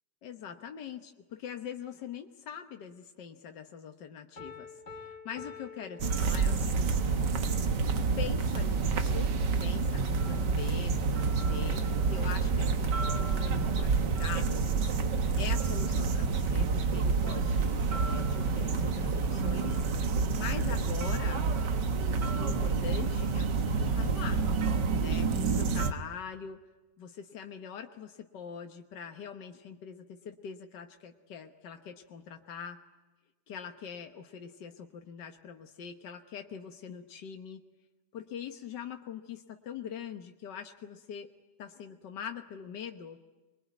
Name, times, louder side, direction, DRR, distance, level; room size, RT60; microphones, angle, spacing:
voice 1, 0.2-7.2 8.2-9.3 9.6-14.7 15.4-19.8 20.1-21.5 22.3-24.4 25.0-26.6 27.0-32.8 33.5-37.6 38.1-41.3 41.6-43.2, left 7 dB, 85° left, 5 dB, 1.8 m, -43 dB
Piano, 4.4-6.9, left 5 dB, 70° left, 3.2 m, -47 dB
sound 1, 6.0-25.9, right 4 dB, 85° right, 2.0 m, -28 dB
24.0 x 22.5 x 9.3 m, 1.2 s
omnidirectional pair, 1.8 m